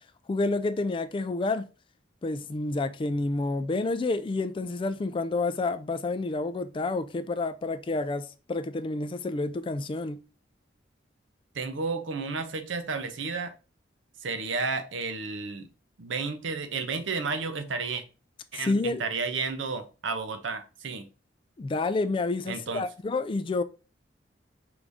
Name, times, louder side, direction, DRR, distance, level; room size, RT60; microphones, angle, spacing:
voice 1, 0.3-1.7 2.2-10.2 18.5-19.1 21.6-23.6, left 3 dB, 25° left, 0.3 m, -29 dB
voice 2, 11.5-13.5 14.2-15.7 16.0-18.0 18.5-21.1 22.5-22.8, right 4 dB, 85° right, 0.7 m, -32 dB
4.8 x 2.6 x 3.4 m
head